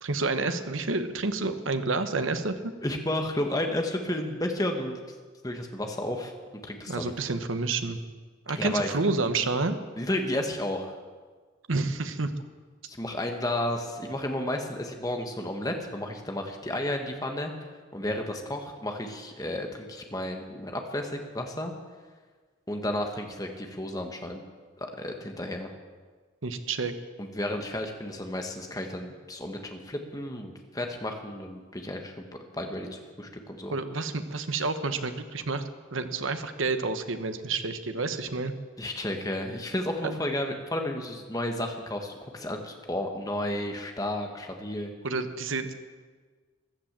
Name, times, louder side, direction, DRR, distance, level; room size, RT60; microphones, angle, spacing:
voice 1, 0.0-2.7 6.9-8.0 8.5-9.8 11.7-12.3 26.4-26.9 33.7-35.6 35.9-38.5 40.0-40.1 45.0-45.7, right 3 dB, 85° right, 9 dB, 1.2 m, -29 dB
voice 2, 2.8-5.0 5.4-6.3 6.6-7.1 8.5-8.9 10.0-10.9 12.8-17.5 17.9-21.7 22.7-24.4 24.8-25.7 27.2-32.3 32.5-33.7 38.8-44.9, left 1 dB, 20° left, 3 dB, 1.5 m, -32 dB
15.0 x 11.5 x 7.5 m, 1.5 s
head